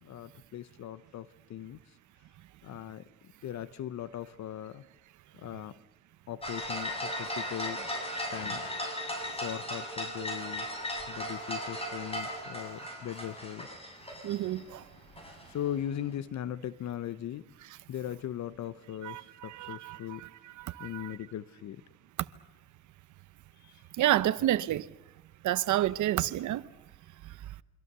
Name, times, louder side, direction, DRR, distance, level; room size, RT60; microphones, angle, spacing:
voice 1, 0.0-1.8 2.6-3.0 3.4-4.8 5.4-5.7 6.3-7.9 8.3-8.7 9.3-13.7 15.5-17.4 17.9-20.2 20.8-21.8 23.6-23.7, left 11 dB, 65° left, 0.9 m, -39 dB
sound 1, 6.4-14.8 15.1-16.1, equal, 20° left, 7.3 m, -37 dB
voice 2, 14.2-14.8 19.0-20.3 20.6-21.1 24.0-24.9 25.4-26.6, right 13 dB, 75° right, 1.0 m, -29 dB
27.5 x 25.0 x 6.8 m
cardioid pair, 90°, 30 cm